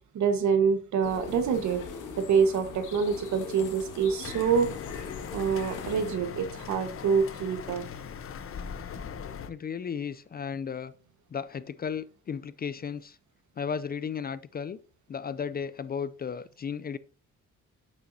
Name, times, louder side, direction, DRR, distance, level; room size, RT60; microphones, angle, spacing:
voice 1, 0.1-1.8 2.2-4.7 5.3-7.8, right 6 dB, 70° right, 1.3 m, -26 dB
sound 1, 1.0-6.1, left 6 dB, 85° left, 2.0 m, -41 dB
sound 2, 4.2-9.5, left 7 dB, 45° left, 0.9 m, -40 dB
voice 2, 9.5-10.9 11.3-13.2 13.6-14.8 15.1-17.0, left 7 dB, 30° left, 0.4 m, -34 dB
8.7 x 7.4 x 2.7 m
cardioid pair, 90°, 30 cm